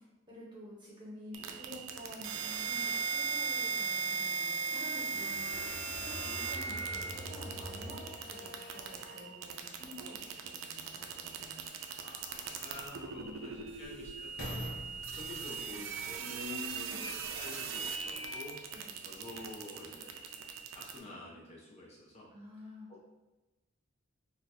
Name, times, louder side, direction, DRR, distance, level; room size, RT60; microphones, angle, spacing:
voice 1, 0.3-11.7 13.1-13.7 16.2-17.1 18.7-18.9 22.3-22.9, left 1 dB, 25° right, -6 dB, 0.9 m, -49 dB
sound 1, 1.3-21.0, right 5 dB, 70° right, 0.4 m, -38 dB
sound 2, 4.3-9.2, equal, 10° left, 1.2 m, -47 dB
sound 3, 11.4-11.5 12.2-17.5 18.1-18.2, equal, 60° left, 0.9 m, -47 dB
voice 2, 12.0-18.7 19.0-20.4 20.7-22.3 22.9-23.0, left 1 dB, 30° left, -4 dB, 0.5 m, -49 dB
2.8 x 2.2 x 3.9 m, 1.1 s
head